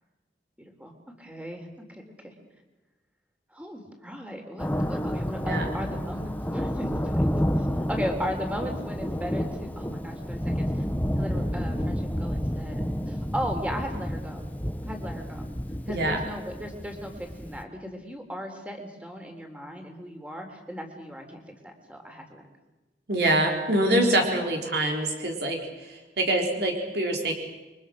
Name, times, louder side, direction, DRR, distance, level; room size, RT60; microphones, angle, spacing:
voice 1, 0.6-0.9 1.2-2.3 3.5-7.2 7.6-10.9 11.2-12.8 13.1-14.5 14.8-15.5 15.9-22.5, equal, 5° right, 4 dB, 3.8 m, -37 dB
Thunder, 4.6-17.6, equal, 10° left, 1.2 m, -30 dB
voice 2, 15.9-16.2 23.1-25.6 25.8-27.3, right 1 dB, 65° right, 2 dB, 4.2 m, -25 dB
29.5 x 24.0 x 6.5 m, 1.1 s
head